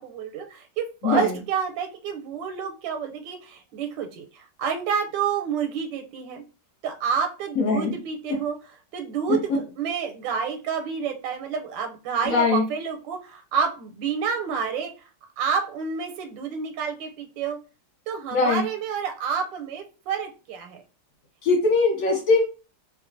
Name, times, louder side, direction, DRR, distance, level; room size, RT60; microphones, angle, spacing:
voice 1, 0.0-6.4 6.8-15.1 15.4-17.6 18.1-20.8, right 7 dB, 85° right, 5 dB, 1.3 m, -29 dB
voice 2, 7.6-7.9 12.3-12.6 18.3-18.6 21.4-22.4, left 3 dB, 65° left, -2 dB, 0.9 m, -21 dB
3.0 x 2.3 x 2.5 m, 0.33 s
omnidirectional pair, 1.9 m